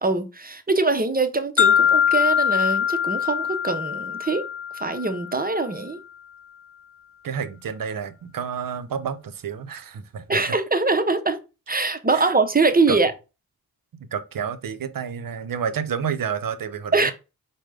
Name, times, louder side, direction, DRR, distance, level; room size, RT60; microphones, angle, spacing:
voice 1, 0.0-4.4 4.7-6.0 10.3-11.4 11.7-13.1 16.9-17.1, right 3 dB, 25° right, 0.7 m, -23 dB
sound 1, 1.6-5.6, left 8 dB, 40° left, 0.5 m, -22 dB
voice 2, 7.2-10.4 11.8-12.3 12.9-13.0 14.0-17.1, right 7 dB, 60° right, 0.6 m, -30 dB
4.9 x 2.2 x 3.3 m
cardioid pair, 40°, 37 cm